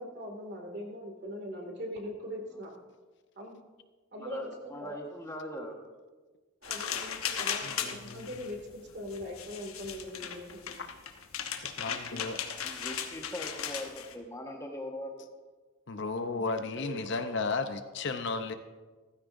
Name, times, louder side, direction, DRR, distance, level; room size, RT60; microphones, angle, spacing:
voice 1, 0.0-2.7 3.4-3.6 4.1-5.0 6.6-10.8 16.8-17.3, equal, 50° right, 1 dB, 2.3 m, -41 dB
voice 2, 4.2-5.8 12.5-15.1, left 1 dB, 15° left, 1 dB, 1.4 m, -40 dB
sound 1, 6.6-14.1, left 8 dB, 85° left, 1.1 m, -37 dB
voice 3, 7.6-8.4 10.8-10.9 11.6-12.4 15.9-18.5, left 3 dB, 55° left, 8 dB, 0.7 m, -34 dB
16.0 x 14.0 x 2.6 m, 1.3 s
head